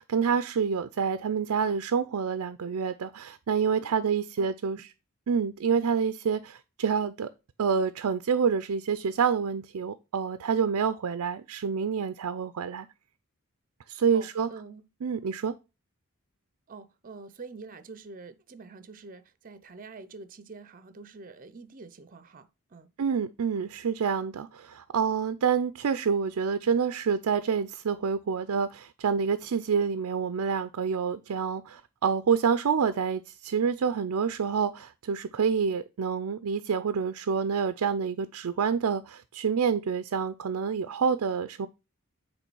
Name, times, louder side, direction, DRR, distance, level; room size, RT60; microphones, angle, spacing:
voice 1, 0.0-4.8 5.3-7.3 7.6-12.9 13.9-14.5 15.0-15.5 23.0-41.7, right 6 dB, 85° right, 0.4 m, -27 dB
voice 2, 14.1-14.8 16.7-22.9, right 4 dB, 40° right, 0.6 m, -46 dB
8.3 x 3.2 x 4.6 m
head